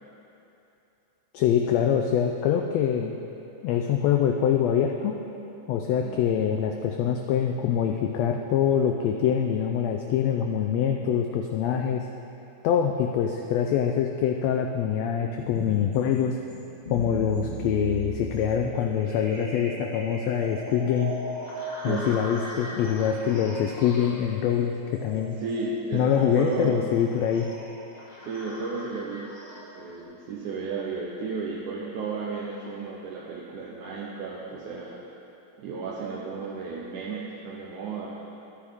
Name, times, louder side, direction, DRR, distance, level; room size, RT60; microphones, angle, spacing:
voice 1, 1.3-3.1 3.6-5.2 5.7-12.0 12.6-16.4 16.9-21.1 21.8-25.4 25.9-27.5, left 8 dB, 80° left, 3 dB, 1.5 m, -24 dB
sound 1, 15.4-30.0, right 1 dB, 30° left, 1.2 m, -38 dB
voice 2, 25.4-26.9 28.2-29.4 29.8-35.0 35.6-38.1, right 4 dB, 80° right, -4 dB, 2.3 m, -33 dB
13.5 x 9.9 x 3.5 m, 2.9 s
omnidirectional pair, 3.5 m